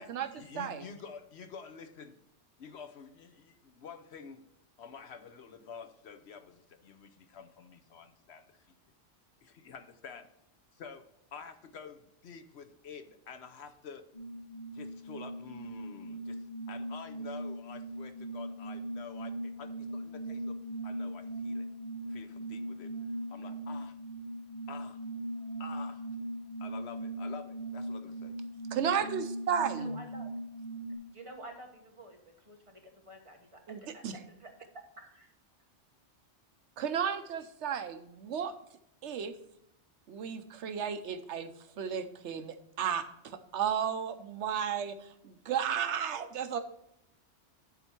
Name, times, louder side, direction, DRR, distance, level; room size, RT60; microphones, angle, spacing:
voice 1, 0.0-2.2 2.6-4.4 4.8-8.8 9.4-10.3 10.7-11.0 11.3-14.0 14.7-20.6 20.8-21.7 22.1-22.9 23.3-24.0 24.7-25.0 25.6-26.1 26.6-28.4, left 6 dB, 70° left, 9 dB, 1.0 m, -49 dB
voice 2, 0.5-0.9 28.7-30.0 33.7-34.2 36.8-38.5 39.0-39.3 40.1-41.5 41.8-46.6, right 8 dB, 75° right, 10 dB, 1.0 m, -34 dB
sound 1, 14.1-31.0, right 1 dB, 45° left, 2.1 m, -39 dB
voice 3, 29.8-30.3 31.1-35.3, right 1 dB, 30° right, 2 dB, 1.3 m, -50 dB
10.5 x 4.4 x 4.4 m, 0.79 s
omnidirectional pair, 1.2 m